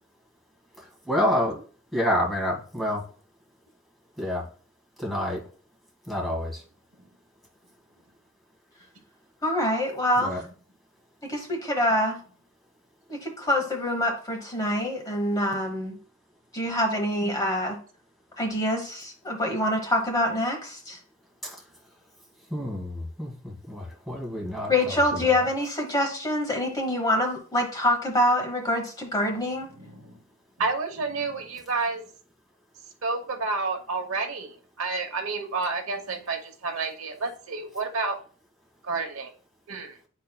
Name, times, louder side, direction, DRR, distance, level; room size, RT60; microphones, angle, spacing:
voice 1, 0.8-1.6 1.9-3.0 4.2-4.4 5.0-5.4 6.1-6.6 10.2-10.4 21.4-21.6 22.5-25.4, left 1 dB, ahead, -4 dB, 1.7 m, -28 dB
voice 2, 9.4-10.4 11.3-12.2 13.1-16.0 16.5-17.8 18.4-21.0 24.7-29.7, left 1 dB, 15° left, 2 dB, 1.0 m, -25 dB
voice 3, 29.7-30.2 30.6-32.1 33.0-38.2 38.8-39.3 39.7-40.0, right 3 dB, 65° right, 5 dB, 0.9 m, -30 dB
10.0 x 4.4 x 2.2 m, 0.42 s
head